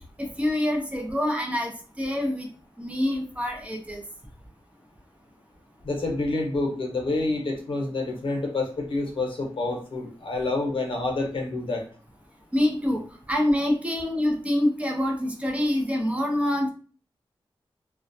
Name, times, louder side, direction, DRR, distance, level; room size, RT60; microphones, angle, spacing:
voice 1, 0.2-2.5 2.8-4.0 12.5-13.0 13.3-16.7, left 1 dB, 15° right, 1 dB, 0.5 m, -26 dB
voice 2, 5.8-11.9, left 2 dB, 70° left, 1 dB, 0.7 m, -28 dB
2.3 x 2.1 x 2.6 m, 0.39 s
wide cardioid pair, 115°, 9 cm